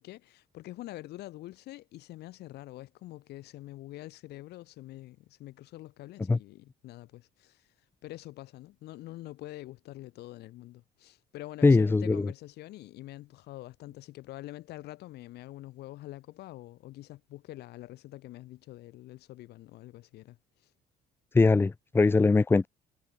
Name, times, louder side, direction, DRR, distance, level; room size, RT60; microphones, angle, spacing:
voice 1, 0.0-20.7, left 16 dB, 80° left, 3.2 m, -45 dB
voice 2, 11.6-12.3 21.3-22.7, left 3 dB, 15° left, 0.5 m, -21 dB
cardioid pair, 110°, 17 cm